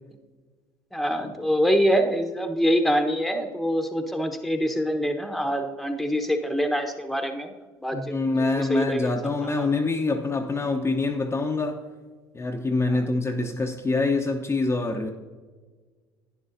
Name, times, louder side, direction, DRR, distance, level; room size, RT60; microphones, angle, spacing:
voice 1, 0.9-7.5 7.8-9.1 9.6-9.7, equal, ahead, 6 dB, 1.1 m, -25 dB
voice 2, 7.9-11.8 12.3-15.1, left 3 dB, 20° left, 2 dB, 0.8 m, -25 dB
11.0 x 9.6 x 2.7 m, 1.4 s
hypercardioid pair, 65°, 11 cm